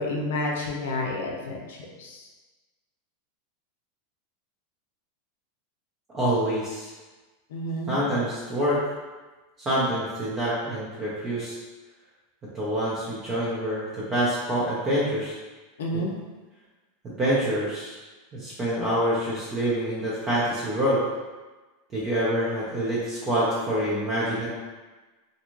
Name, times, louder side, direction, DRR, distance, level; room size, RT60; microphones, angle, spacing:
voice 1, 0.0-2.2 7.5-8.0 15.8-16.1, left 1 dB, 80° left, -1 dB, 0.5 m, -30 dB
voice 2, 6.1-6.9 7.9-8.8 9.6-11.5 12.5-15.4 15.9-16.0 17.0-18.0 18.3-21.0 21.9-24.5, right 1 dB, 25° right, -8 dB, 0.6 m, -26 dB
2.6 x 2.4 x 3.0 m, 1.3 s
supercardioid pair, 135°, 0 cm